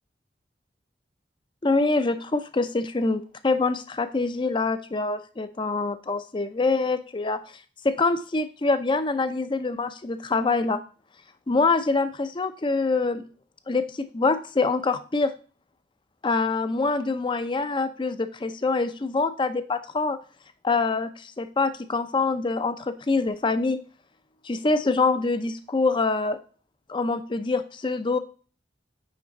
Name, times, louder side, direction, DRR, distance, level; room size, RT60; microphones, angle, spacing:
voice 1, 1.6-7.4 7.8-10.8 11.5-13.2 13.7-15.3 16.2-20.2 20.6-23.8 24.4-26.4 26.9-28.2, left 3 dB, 25° left, 11 dB, 0.5 m, -25 dB
6.0 x 5.0 x 3.9 m, 0.38 s
head